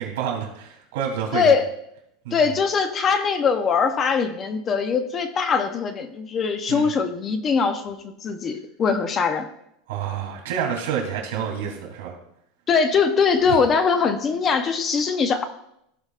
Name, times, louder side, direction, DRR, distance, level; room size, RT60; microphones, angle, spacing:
voice 1, 0.0-1.5 2.2-2.5 6.7-6.9 9.9-12.2 13.5-13.6, right 8 dB, 80° right, 1 dB, 2.9 m, -28 dB
voice 2, 1.3-1.7 2.3-9.5 12.7-15.4, left 5 dB, 25° left, 8 dB, 0.6 m, -22 dB
15.5 x 5.1 x 2.5 m, 0.77 s
supercardioid pair, 165°, 0 cm